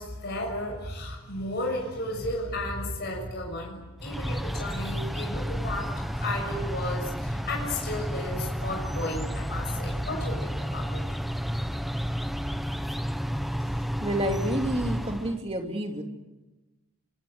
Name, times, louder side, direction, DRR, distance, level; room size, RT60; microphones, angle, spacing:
voice 1, 0.0-11.0, left 1 dB, 50° left, 0 dB, 6.7 m, -34 dB
sound 1, 4.0-15.4, equal, ahead, 0.9 m, -31 dB
voice 2, 14.0-16.0, right 1 dB, 25° right, 3 dB, 2.8 m, -29 dB
26.5 x 23.5 x 8.1 m, 1.1 s
head